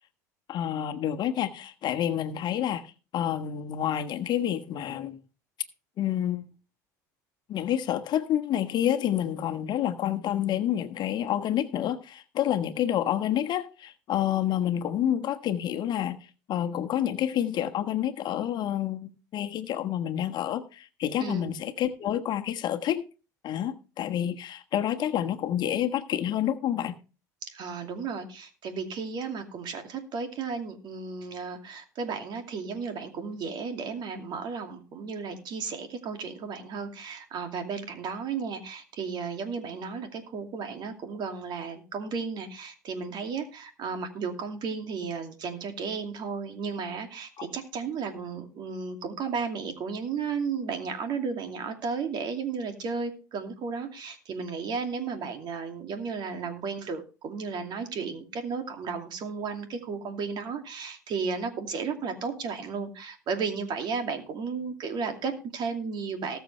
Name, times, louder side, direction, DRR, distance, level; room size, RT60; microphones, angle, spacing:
voice 1, 0.5-5.2 6.0-6.4 7.5-16.2 16.5-23.0 23.4-26.9 47.4-47.5, left 11 dB, 50° left, 1.3 m, -28 dB
voice 2, 21.2-21.5 27.4-66.4, right 5 dB, 50° right, 2.5 m, -34 dB
19.5 x 6.9 x 3.3 m
hypercardioid pair, 80°, 10 cm